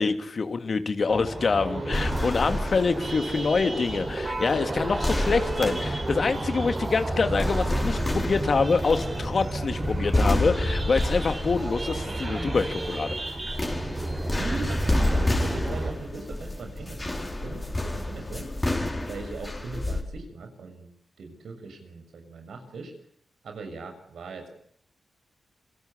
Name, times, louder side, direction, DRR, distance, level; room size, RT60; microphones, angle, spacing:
voice 1, 0.0-13.1, left 4 dB, 55° left, 8 dB, 3.0 m, -26 dB
sound 1, 1.1-15.9, right 2 dB, 35° right, 6.0 m, -32 dB
sound 2, 1.9-20.0, left 1 dB, 20° left, 5.1 m, -30 dB
voice 2, 1.9-2.4 14.3-18.5 19.1-20.9 21.2-22.9 23.4-24.5, right 3 dB, 80° right, 6 dB, 6.7 m, -39 dB
28.0 x 23.5 x 8.5 m, 0.69 s
cardioid pair, 75°, 0 cm